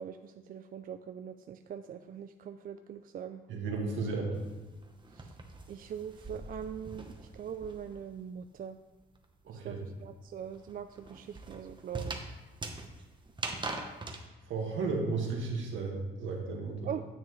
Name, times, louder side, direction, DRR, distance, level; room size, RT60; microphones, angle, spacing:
voice 1, 0.0-3.4 5.2-5.3 5.7-8.8 9.5-12.2 16.8-17.1, right 8 dB, 45° right, 9 dB, 0.4 m, -42 dB
voice 2, 3.5-4.3 9.4-9.8 14.5-16.9, right 4 dB, 75° right, 0 dB, 1.8 m, -34 dB
sound 1, 4.3-8.1 8.4-14.2, right 3 dB, 25° right, 0.9 m, -42 dB
9.5 x 7.4 x 3.1 m, 1.1 s
cardioid pair, 90°, 20 cm